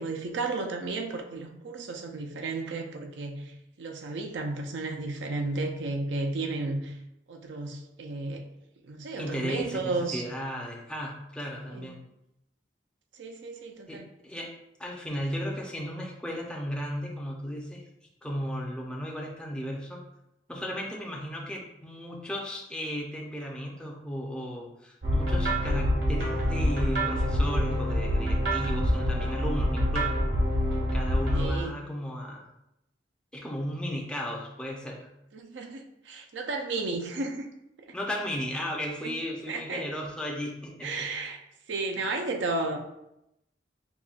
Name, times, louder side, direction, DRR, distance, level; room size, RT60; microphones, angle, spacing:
voice 1, 0.0-6.9 7.3-8.5 8.8-10.2 11.7-11.9 13.2-14.1 31.3-31.8 35.3-37.5 37.9-38.0 39.0-39.2 39.5-39.9 40.8-41.4 41.7-42.8, right 3 dB, 80° right, 2 dB, 0.5 m, -33 dB
voice 2, 9.2-12.0 13.9-14.5 14.8-17.8 18.2-20.0 20.5-30.2 30.8-32.5 33.3-35.1 37.9-41.1, equal, 5° left, -2 dB, 0.5 m, -35 dB
sound 1, 25.0-31.5, equal, 65° right, 1.0 m, -26 dB
5.4 x 2.2 x 2.4 m, 0.85 s
head